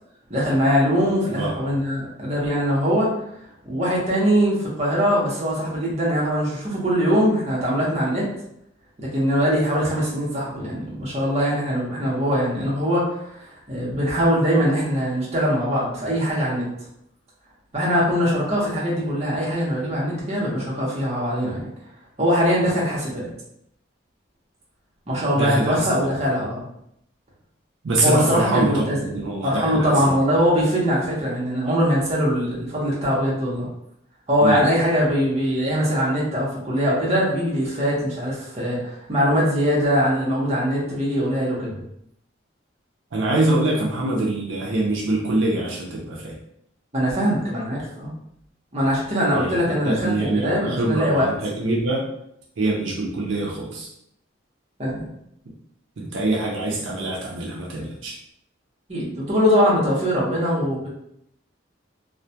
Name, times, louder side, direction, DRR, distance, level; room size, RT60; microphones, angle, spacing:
voice 1, 0.3-3.1 3.6-8.3 9.0-16.7 17.7-21.7 22.2-23.3 25.1-26.6 28.0-29.1 29.4-33.7 34.3-41.8 46.9-48.1 48.7-51.3 54.8-55.1 58.9-60.9, equal, 35° right, -6 dB, 0.7 m, -22 dB
voice 2, 25.3-25.9 27.8-30.1 34.4-34.6 43.1-46.4 49.3-52.0 52.6-53.9 56.0-58.2, right 2 dB, 75° right, -2 dB, 0.5 m, -24 dB
2.2 x 2.1 x 2.7 m, 0.76 s
head